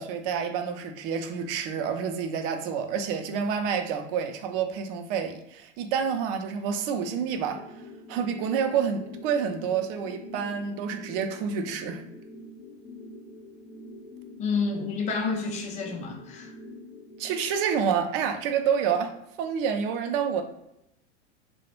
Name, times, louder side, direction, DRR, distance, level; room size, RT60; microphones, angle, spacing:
voice 1, 0.0-7.6 8.1-12.0 17.2-19.1 19.4-20.4, right 7 dB, 50° right, 6 dB, 0.4 m, -28 dB
sound 1, 7.5-17.5, left 1 dB, 65° left, 0.7 m, -45 dB
voice 2, 14.4-16.5, left 4 dB, 20° left, 2 dB, 0.4 m, -29 dB
2.2 x 2.0 x 3.0 m, 0.81 s
hypercardioid pair, 110°, 36 cm